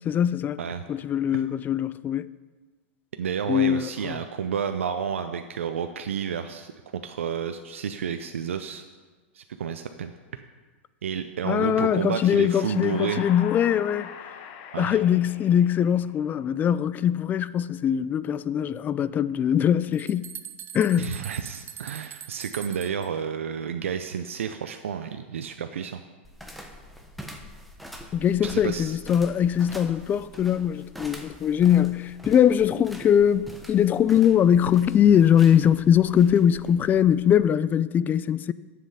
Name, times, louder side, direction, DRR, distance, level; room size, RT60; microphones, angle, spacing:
voice 1, 0.0-0.6 0.9-2.3 3.5-4.2 11.4-14.1 14.8-20.3 20.7-21.1 28.1-38.5, left 9 dB, 25° left, 0.4 m, -22 dB
voice 2, 3.2-8.8 9.3-10.1 11.0-13.3 14.7-15.0 21.0-26.0 28.4-29.0, right 7 dB, 85° right, 0.5 m, -30 dB
sound 1, 12.5-16.3, left 8 dB, 55° left, 1.0 m, -41 dB
sound 2, 19.6-19.7 19.9-23.1, right 9 dB, 30° right, 0.7 m, -41 dB
sound 3, 26.2-37.5, equal, ahead, 1.1 m, -44 dB
9.9 x 7.6 x 5.6 m
hypercardioid pair, 110°, 7 cm